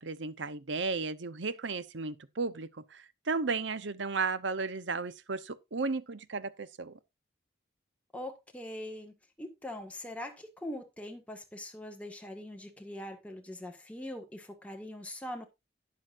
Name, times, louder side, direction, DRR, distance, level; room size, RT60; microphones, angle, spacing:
voice 1, 0.0-7.0, right 4 dB, 75° right, 0.9 m, -34 dB
voice 2, 8.1-15.5, left 1 dB, 5° left, 1.7 m, -42 dB
12.0 x 9.6 x 2.6 m
head